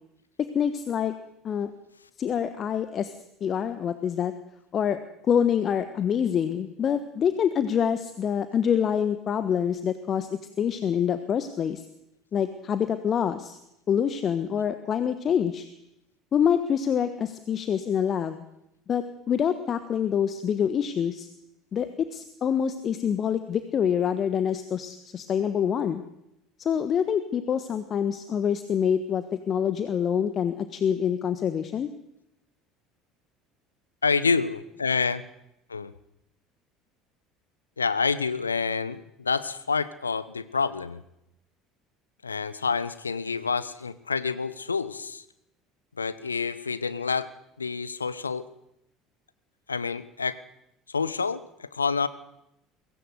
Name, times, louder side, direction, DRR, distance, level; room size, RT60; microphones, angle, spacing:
voice 1, 0.5-1.1 1.4-1.7 2.2-3.1 3.4-4.3 4.7-5.0 5.3-11.9 12.3-13.6 13.9-15.7 16.3-18.4 18.9-21.3 21.7-26.0 26.6-31.9, left 8 dB, 40° left, 11 dB, 1.4 m, -26 dB
voice 2, 34.0-35.2 35.7-35.9 37.8-41.0 42.2-45.2 46.0-47.3 47.6-48.4 49.7-50.4 50.9-52.1, left 5 dB, 80° left, 15 dB, 0.9 m, -28 dB
23.0 x 17.0 x 7.9 m, 0.84 s
figure-of-eight pair, 65°, 0 cm